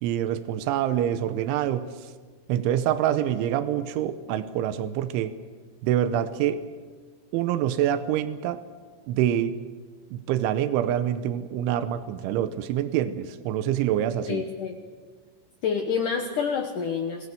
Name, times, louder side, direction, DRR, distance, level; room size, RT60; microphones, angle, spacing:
voice 1, 0.0-2.1 2.5-5.3 5.8-6.6 7.3-8.6 9.1-9.6 10.1-14.4, right 11 dB, 90° right, 11 dB, 3.3 m, -26 dB
voice 2, 14.3-14.8 15.6-17.3, left 6 dB, 70° left, 4 dB, 1.9 m, -28 dB
26.0 x 20.0 x 6.9 m, 1.5 s
omnidirectional pair, 5.4 m